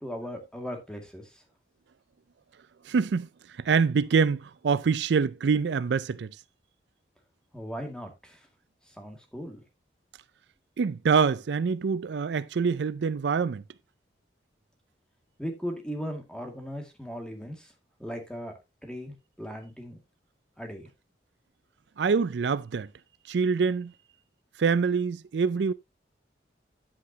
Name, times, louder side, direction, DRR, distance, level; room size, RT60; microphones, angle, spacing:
voice 1, 0.0-1.4 7.5-8.5 8.9-9.6 15.4-17.7 18.0-20.0 20.6-20.9, equal, 5° left, 2.0 m, -38 dB
voice 2, 2.8-6.3 10.8-13.6 22.0-22.9 23.3-23.9 24.6-25.7, right 5 dB, 70° right, 0.4 m, -25 dB
9.8 x 8.7 x 2.8 m
head